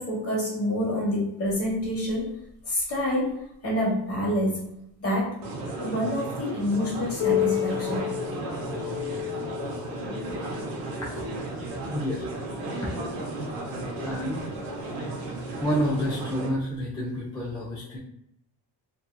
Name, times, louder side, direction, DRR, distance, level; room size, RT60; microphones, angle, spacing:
voice 1, 0.0-2.3 2.6-3.4 3.6-4.7 5.0-5.4 5.8-8.2, equal, 35° left, -4 dB, 1.1 m, -27 dB
sound 1, 1.8-1.9 2.2-2.3 5.4-16.5, right 2 dB, 85° right, 0.8 m, -34 dB
Piano, 7.2-12.5 13.4-13.5 14.0-14.1 14.9-15.0 16.0-16.1, left 14 dB, 70° left, 0.7 m, -31 dB
voice 2, 11.8-12.3 12.8-12.9 14.0-14.4 15.6-18.0, equal, 10° left, -6 dB, 0.3 m, -29 dB
2.7 x 2.3 x 2.2 m, 0.78 s
cardioid pair, 120°, 43 cm